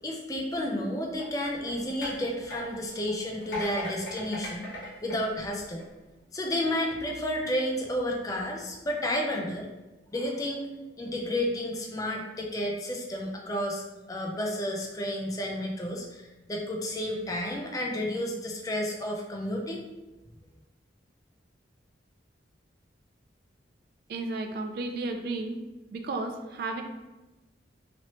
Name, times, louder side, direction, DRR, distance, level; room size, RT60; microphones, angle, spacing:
voice 1, 0.0-4.7 5.0-5.9 6.3-9.7 10.1-10.6 11.0-19.8, left 1 dB, 20° left, 0 dB, 0.4 m, -31 dB
sound 1, 1.1-6.1 6.6-6.9, left 1 dB, 65° left, 1.2 m, -40 dB
voice 2, 24.1-25.6 25.9-26.8, right 3 dB, 55° right, 5 dB, 0.3 m, -33 dB
3.0 x 3.0 x 2.9 m, 1.1 s
head